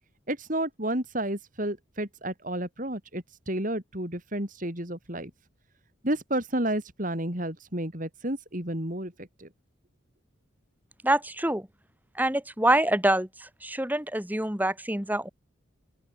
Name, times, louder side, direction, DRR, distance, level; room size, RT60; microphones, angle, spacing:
voice 1, 0.3-5.3 6.0-9.5, right 1 dB, 40° right, 4.3 m, -31 dB
voice 2, 11.0-11.6 12.2-13.3 13.6-15.3, right 1 dB, 10° right, 2.3 m, -25 dB
open air
head